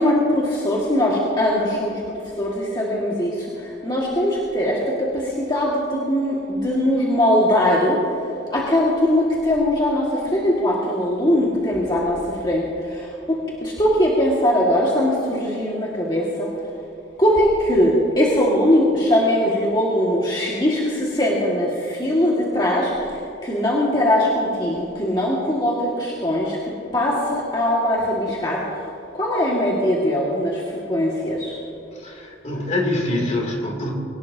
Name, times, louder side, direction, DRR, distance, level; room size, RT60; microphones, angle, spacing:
voice 1, 0.0-2.0 2.4-8.0 8.5-16.5 17.2-26.6 26.9-28.6 29.1-31.6, left 1 dB, 25° left, -5 dB, 1.9 m, -21 dB
voice 2, 32.0-33.9, left 1 dB, 40° left, 0 dB, 2.9 m, -24 dB
23.0 x 18.5 x 2.8 m, 2.6 s
head